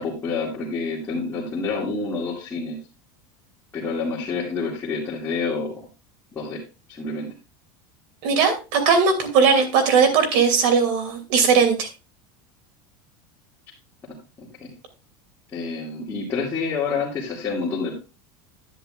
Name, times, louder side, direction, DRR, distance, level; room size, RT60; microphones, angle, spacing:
voice 1, 0.0-2.8 3.7-5.7 6.3-6.6 6.9-7.3 14.4-14.7 15.5-17.9, left 4 dB, 20° left, -6 dB, 2.3 m, -28 dB
voice 2, 8.2-11.9, right 5 dB, 60° right, 6 dB, 2.8 m, -18 dB
10.5 x 9.9 x 2.5 m, 0.30 s
supercardioid pair, 160°, 11 cm